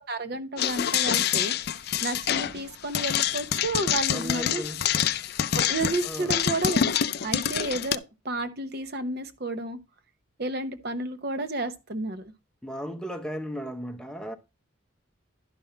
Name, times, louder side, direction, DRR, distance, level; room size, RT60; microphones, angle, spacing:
voice 1, 0.0-4.6 5.5-6.9 7.2-9.8 10.4-12.3, right 2 dB, 50° right, 0.9 m, -31 dB
sound 1, 0.6-7.9, left 9 dB, 50° left, 0.4 m, -26 dB
voice 2, 4.1-4.9 6.0-6.4 12.6-14.4, equal, 5° left, 0.6 m, -35 dB
11.5 x 5.4 x 4.3 m
head